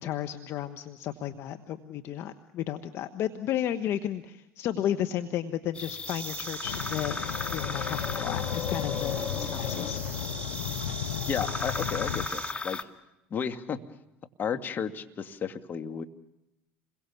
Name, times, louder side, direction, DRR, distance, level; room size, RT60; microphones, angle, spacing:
voice 1, 0.0-7.2 7.5-10.0, left 11 dB, 55° left, 8 dB, 1.4 m, -33 dB
sound 1, 5.8-12.8, left 4 dB, 20° left, 2.0 m, -36 dB
sound 2, 6.1-12.5, right 9 dB, 45° right, 1.2 m, -43 dB
sound 3, 6.6-12.3, left 10 dB, 85° left, 1.3 m, -34 dB
voice 2, 11.3-12.8 13.3-13.8 14.4-16.0, left 7 dB, 40° left, 7 dB, 2.1 m, -33 dB
28.5 x 22.5 x 7.1 m, 0.91 s
hypercardioid pair, 80°, 5 cm